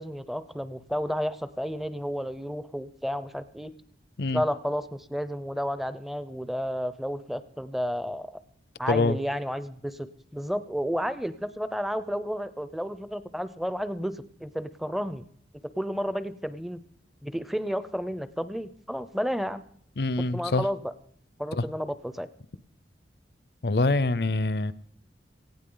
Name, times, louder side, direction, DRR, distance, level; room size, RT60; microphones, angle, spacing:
voice 1, 0.0-3.7 4.3-8.4 8.8-10.1 10.3-15.2 15.8-16.8 17.2-19.6 20.3-20.9 21.4-22.3, equal, ahead, 0.5 m, -31 dB
voice 2, 20.0-20.6 21.5-21.6 23.6-24.7, left 2 dB, 65° left, 0.6 m, -25 dB
18.5 x 15.5 x 3.8 m
head